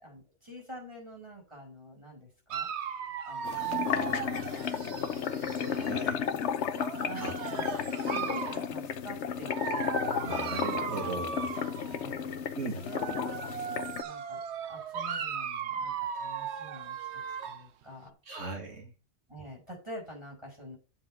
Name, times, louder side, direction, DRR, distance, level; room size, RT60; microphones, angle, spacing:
voice 1, 0.0-6.4 6.8-10.0 11.9-12.3 12.7-18.4 19.3-20.8, equal, 25° right, -1 dB, 5.6 m, -48 dB
Dog, 2.5-5.9 6.7-8.7 9.5-12.1 12.8-17.7, right 8 dB, 70° right, 1.0 m, -37 dB
sound 1, 3.4-14.0, left 7 dB, 70° left, 1.1 m, -33 dB
voice 2, 5.7-6.2 7.2-7.3 10.2-11.6 12.6-12.8 18.3-18.9, right 3 dB, 90° right, 2 dB, 2.3 m, -38 dB
7.3 x 6.1 x 6.3 m, 0.33 s
omnidirectional pair, 1.2 m